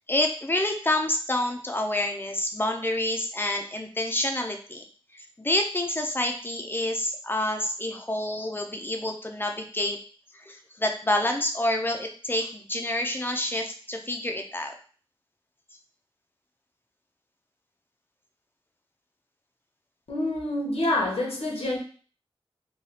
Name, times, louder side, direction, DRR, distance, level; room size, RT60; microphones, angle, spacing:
voice 1, 0.1-4.9 5.1-10.0 10.5-14.7, left 1 dB, 20° left, 3 dB, 0.5 m, -28 dB
voice 2, 20.1-21.8, left 1 dB, 85° left, -2 dB, 0.9 m, -27 dB
3.2 x 2.3 x 2.8 m, 0.42 s
wide cardioid pair, 70°, 10 cm